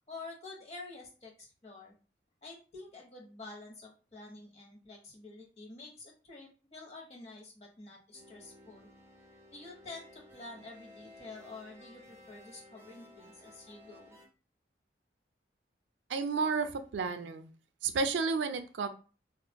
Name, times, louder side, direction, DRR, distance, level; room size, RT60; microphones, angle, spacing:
voice 1, 0.1-1.9 2.4-8.9 9.5-14.2, left 3 dB, 35° left, -1 dB, 0.9 m, -49 dB
sound 1, 8.1-14.3, left 1 dB, 15° right, 0.5 m, -56 dB
voice 2, 16.1-17.5 17.8-18.9, right 4 dB, 90° right, 8 dB, 0.4 m, -31 dB
3.5 x 2.3 x 2.2 m, 0.36 s
head